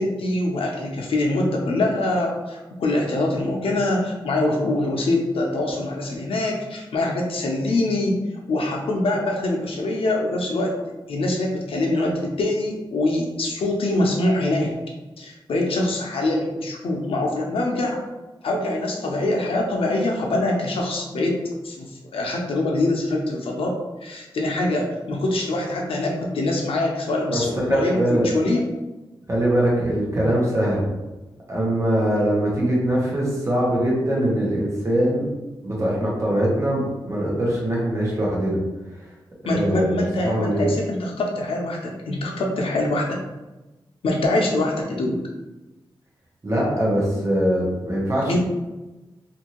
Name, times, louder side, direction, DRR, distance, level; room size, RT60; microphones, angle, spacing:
voice 1, 0.0-8.2 8.5-10.7 11.1-14.8 15.2-18.0 18.4-21.4 21.6-28.6 39.4-43.3 44.0-45.2 48.3-48.4, left 2 dB, 85° left, 0 dB, 0.6 m, -24 dB
voice 2, 27.3-28.3 29.3-30.8 31.5-35.3 35.6-38.6 39.5-40.6 46.4-48.4, right 1 dB, 35° right, -5 dB, 0.9 m, -22 dB
2.6 x 2.6 x 2.9 m, 1.1 s
wide cardioid pair, 175°, 9 cm